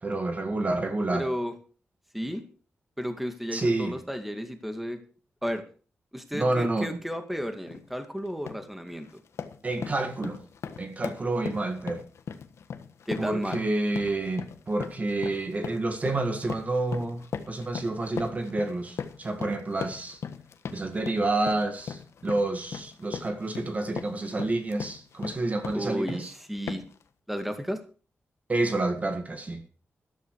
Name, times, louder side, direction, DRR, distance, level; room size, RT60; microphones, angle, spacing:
voice 1, 0.0-1.3 3.5-4.0 6.3-6.9 9.6-10.4 10.8-12.0 13.2-20.2 20.7-26.3 28.5-29.6, right 2 dB, 35° right, 1.8 m, -29 dB
voice 2, 1.1-1.5 2.1-2.5 3.0-5.0 5.4-5.6 6.1-9.1 13.1-13.6 25.7-26.8 27.3-27.8, equal, 5° right, 2.2 m, -32 dB
sound 1, 7.7-7.9 8.3-8.7 9.0-26.3 26.7-27.0, left 6 dB, 80° left, 1.4 m, -39 dB
13.5 x 12.5 x 4.8 m
wide cardioid pair, 115°, 5 cm